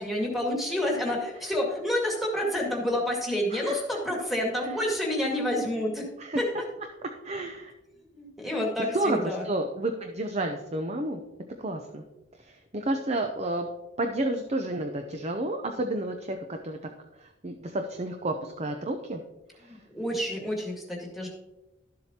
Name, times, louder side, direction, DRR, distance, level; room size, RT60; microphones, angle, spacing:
voice 1, 0.0-6.1 6.4-6.5 8.1-9.4 19.6-21.3, left 1 dB, ahead, -2 dB, 2.0 m, -29 dB
voice 2, 7.2-7.7 8.8-11.2 11.6-12.0 12.4-13.7 14.0-16.8 17.2-19.2 19.6-19.8, right 1 dB, 35° right, 5 dB, 0.6 m, -31 dB
12.5 x 7.6 x 2.9 m, 0.97 s
head